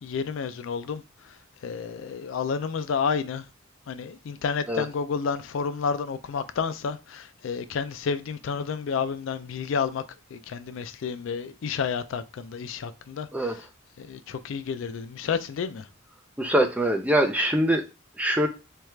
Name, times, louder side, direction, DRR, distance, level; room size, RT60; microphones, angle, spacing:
voice 1, 0.0-3.5 3.9-10.0 10.3-13.7 14.0-15.9, left 6 dB, 65° left, 0.3 m, -30 dB
voice 2, 16.4-17.8 18.2-18.5, right 1 dB, 5° right, 0.4 m, -23 dB
4.5 x 2.3 x 3.1 m
head